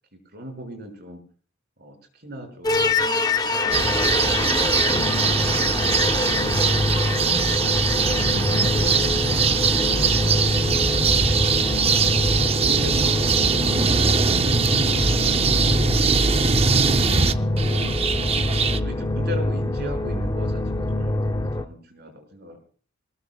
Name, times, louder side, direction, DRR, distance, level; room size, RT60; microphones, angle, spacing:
voice 1, 0.3-1.2 1.8-3.0 3.5-7.0 8.6-9.4 10.3-11.1 12.3-14.1 17.5-18.0 18.7-22.6, equal, 55° right, 4 dB, 5.9 m, -39 dB
sound 1, 2.6-21.6, left 2 dB, 20° left, 0.7 m, -25 dB
sound 2, 3.7-18.8, right 5 dB, 30° right, 0.6 m, -21 dB
voice 2, 7.0-7.7 8.3-9.6 9.9-10.2 17.0-18.0, left 1 dB, 75° left, 1 dB, 6.2 m, -36 dB
22.5 x 20.5 x 2.3 m, 0.41 s
head